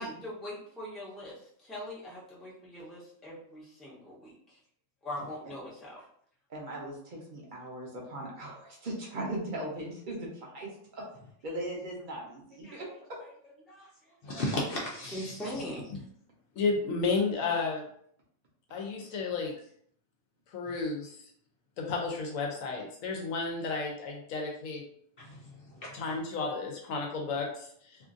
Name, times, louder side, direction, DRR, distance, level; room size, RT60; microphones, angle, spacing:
voice 1, 0.0-4.6 5.0-6.1 12.6-12.8 13.2-13.3 13.7-14.4 15.1-16.0, left 1 dB, ahead, -7 dB, 0.6 m, -42 dB
voice 2, 6.5-10.7 10.9-11.0 11.4-12.9, right 1 dB, 45° right, -3 dB, 0.8 m, -38 dB
voice 3, 14.2-15.3 25.2-25.9 28.0-28.1, left 1 dB, 60° left, -2 dB, 0.6 m, -35 dB
voice 4, 16.6-17.8 18.7-19.5 20.5-21.3 21.8-24.8 25.9-28.1, left 4 dB, 80° left, 0 dB, 1.0 m, -32 dB
2.9 x 2.4 x 2.5 m, 0.64 s
omnidirectional pair, 1.4 m